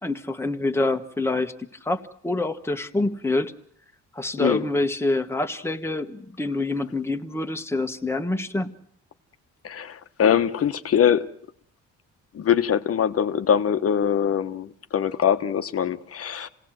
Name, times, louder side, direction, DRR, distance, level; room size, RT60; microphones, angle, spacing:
voice 1, 0.0-1.5 1.8-3.5 4.1-8.7, left 2 dB, 10° left, 6 dB, 1.3 m, -26 dB
voice 2, 9.6-11.3 12.3-16.5, left 8 dB, 50° left, 10 dB, 1.2 m, -23 dB
27.0 x 18.0 x 7.7 m, 0.64 s
cardioid pair, 90°, 30 cm